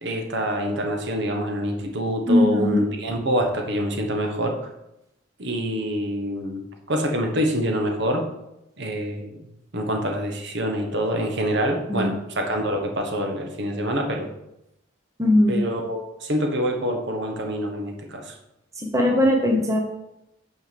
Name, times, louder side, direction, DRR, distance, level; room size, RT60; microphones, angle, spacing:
voice 1, 0.0-4.6 5.4-8.2 8.8-9.4 9.7-14.3 15.5-18.3, equal, 60° right, 3 dB, 1.3 m, -26 dB
voice 2, 2.3-2.8 11.9-12.1 15.2-15.6 18.8-19.8, left 1 dB, 15° right, 1 dB, 0.9 m, -19 dB
6.4 x 4.8 x 6.7 m, 0.87 s
head